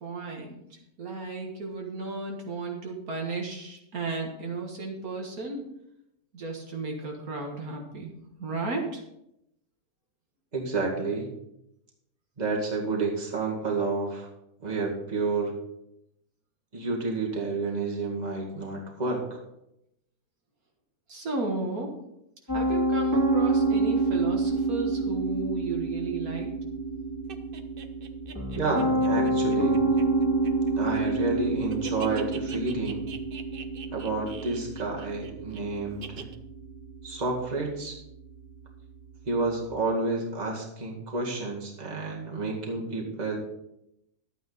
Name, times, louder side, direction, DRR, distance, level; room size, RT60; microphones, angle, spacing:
voice 1, 0.0-5.6 6.3-8.1 8.4-9.0 21.1-22.0 22.5-26.6, right 3 dB, 70° right, 1 dB, 2.1 m, -34 dB
voice 2, 10.5-11.3 12.4-14.3 14.6-15.5 16.7-19.4 28.5-29.8 30.7-33.0 33.9-36.3 37.0-38.0 39.3-43.4, right 3 dB, 25° right, -1 dB, 2.1 m, -30 dB
Piano, 22.5-39.6, right 2 dB, 10° left, 2.6 m, -28 dB
sound 1, 27.3-31.3 31.5-35.6 36.0-36.4, right 7 dB, 45° right, 0.8 m, -44 dB
12.0 x 9.0 x 4.1 m, 0.81 s
omnidirectional pair, 1.6 m